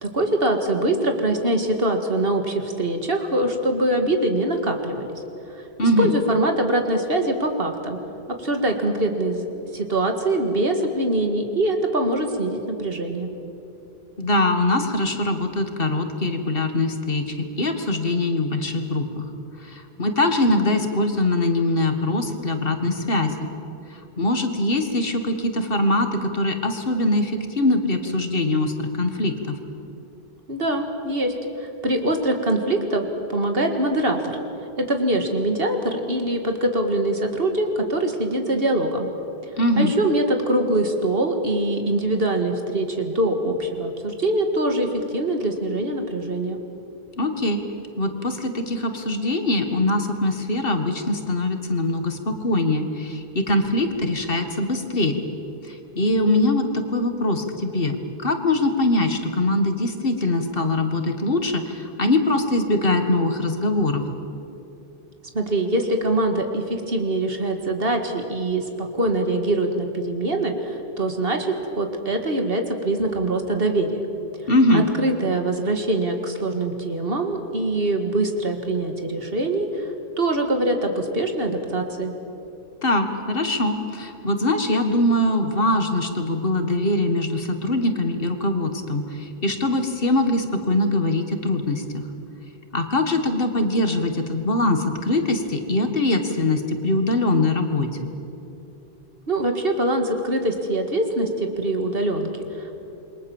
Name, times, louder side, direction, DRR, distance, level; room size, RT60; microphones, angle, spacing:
voice 1, 0.0-5.2 5.5-5.6 6.0-8.0 8.4-9.5 9.7-13.3 30.5-34.4 34.8-39.1 39.8-46.6 65.3-74.0 74.7-82.1 99.3-102.8, right 1 dB, 65° right, 5 dB, 2.3 m, -23 dB
voice 2, 5.8-6.1 14.2-19.2 19.6-23.5 23.9-29.6 39.6-39.9 47.2-47.6 48.0-55.2 55.6-64.1 74.5-74.9 82.8-92.0 92.7-98.1, left 2 dB, 60° left, 6 dB, 2.0 m, -22 dB
28.0 x 22.5 x 7.3 m, 2.9 s
omnidirectional pair, 1.1 m